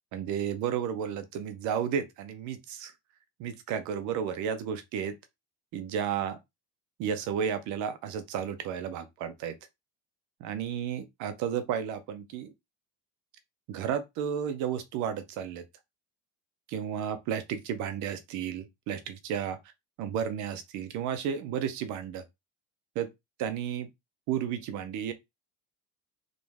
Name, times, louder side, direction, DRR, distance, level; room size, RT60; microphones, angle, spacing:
voice 1, 0.1-2.9 3.4-5.1 5.7-6.4 7.0-9.6 10.4-12.5 13.7-15.6 16.7-19.6 20.0-22.2 22.9-23.1 23.4-23.9 24.3-25.1, right 8 dB, 50° right, 0.8 m, -32 dB
3.9 x 3.1 x 3.5 m
cardioid pair, 170°, 36 cm